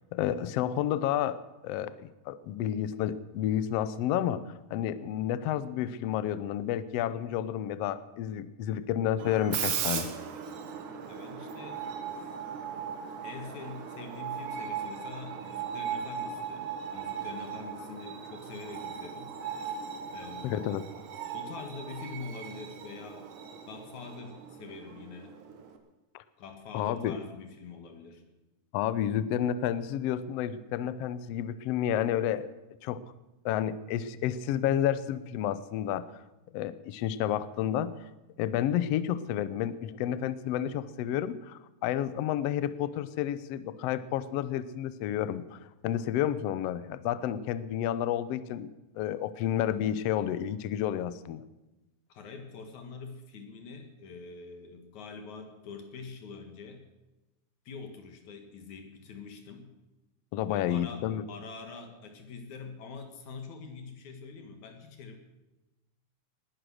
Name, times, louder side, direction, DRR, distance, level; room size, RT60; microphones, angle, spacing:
voice 1, 0.1-4.4 4.7-10.1 20.4-20.8 26.7-27.2 28.7-32.5 32.8-33.0 33.4-36.0 36.5-37.9 38.4-45.6 45.8-48.7 48.9-51.4 60.3-61.2, left 11 dB, 85° left, 15 dB, 1.4 m, -30 dB
Screech, 9.2-25.8, right 7 dB, 70° right, 2.8 m, -38 dB
voice 2, 11.1-11.9 13.2-19.3 20.1-20.8 21.3-23.3 23.6-25.4 26.4-28.2 52.1-56.8 57.7-59.7 60.5-65.2, left 4 dB, 65° left, 6 dB, 3.0 m, -45 dB
19.5 x 11.0 x 6.4 m, 1.0 s
omnidirectional pair, 3.8 m